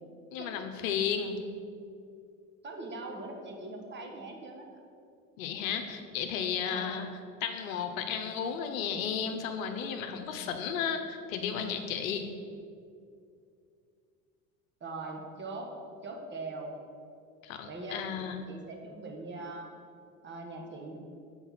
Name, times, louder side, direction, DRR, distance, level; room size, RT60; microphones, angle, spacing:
voice 1, 0.3-1.4 5.4-7.1 7.4-12.3 17.4-18.4, left 7 dB, 70° left, 6 dB, 0.8 m, -33 dB
voice 2, 2.6-4.8 6.7-7.1 14.8-16.7 17.6-19.8 20.2-21.0, right 2 dB, 25° right, 1 dB, 1.3 m, -41 dB
7.0 x 4.5 x 5.7 m, 2.4 s
hypercardioid pair, 70°, 42 cm